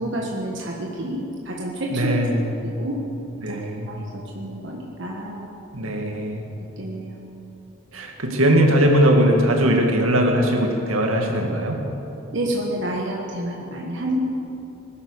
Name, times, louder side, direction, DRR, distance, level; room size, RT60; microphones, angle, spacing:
voice 1, 0.0-2.1 2.8-3.0 3.5-3.6 3.9-5.5 6.8-7.2 12.3-14.3, right 1 dB, 55° right, -2 dB, 1.5 m, -29 dB
voice 2, 1.9-2.5 3.4-3.9 5.7-6.4 7.9-11.8, right 1 dB, 80° right, 2 dB, 2.2 m, -20 dB
19.0 x 11.5 x 6.6 m, 2.9 s
head